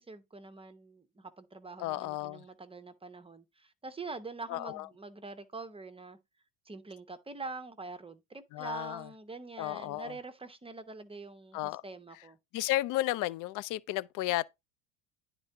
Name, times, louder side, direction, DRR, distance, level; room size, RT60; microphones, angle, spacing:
voice 1, 0.0-6.2 6.7-12.4, right 3 dB, 15° right, 0.8 m, -45 dB
voice 2, 1.8-2.5 4.5-4.9 8.5-9.1 9.6-10.2 11.5-11.8 12.5-14.5, left 16 dB, 55° left, 0.5 m, -33 dB
9.7 x 3.7 x 4.5 m
supercardioid pair, 95°, 40 cm